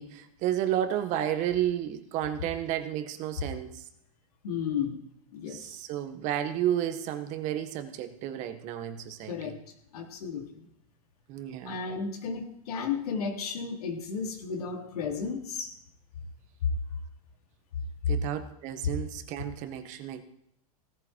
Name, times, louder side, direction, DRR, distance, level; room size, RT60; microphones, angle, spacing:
voice 1, 0.0-3.8 5.5-9.5 11.3-11.8 18.1-20.2, right 11 dB, 40° right, 9 dB, 1.6 m, -32 dB
voice 2, 4.4-5.0 5.3-5.6 9.3-9.5 9.9-10.4 11.6-15.7, left 6 dB, 80° left, 2 dB, 4.1 m, -33 dB
17.5 x 14.5 x 4.7 m, 0.76 s
supercardioid pair, 140°, 19 cm